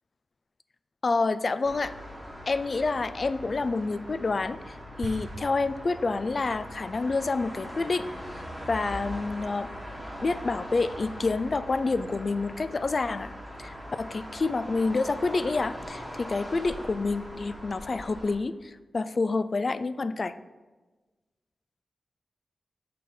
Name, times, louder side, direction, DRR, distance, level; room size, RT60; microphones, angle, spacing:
voice 1, 1.0-1.9 2.5-8.1 8.7-9.7 10.2-13.3 13.6-20.3, left 3 dB, 45° left, 14 dB, 0.3 m, -28 dB
sound 1, 1.6-18.3, equal, 10° left, 1.5 m, -41 dB
sound 2, 5.0-6.6, right 3 dB, 75° right, 0.6 m, -42 dB
6.5 x 5.6 x 5.4 m, 1.2 s
wide cardioid pair, 110°, 0 cm